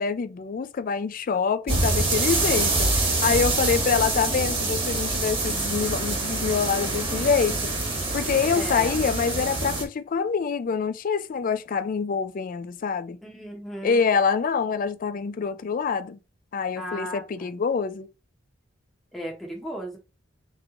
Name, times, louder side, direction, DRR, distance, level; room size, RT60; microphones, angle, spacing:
voice 1, 0.0-7.7 8.1-13.2 13.8-16.2 16.5-18.1, left 6 dB, 45° left, 0.3 m, -26 dB
sound 1, 1.7-9.8, right 2 dB, 30° right, 1.3 m, -25 dB
voice 2, 8.5-8.9 13.2-14.1 16.8-17.5 19.1-20.0, equal, ahead, 0.9 m, -35 dB
3.6 x 3.1 x 3.6 m
head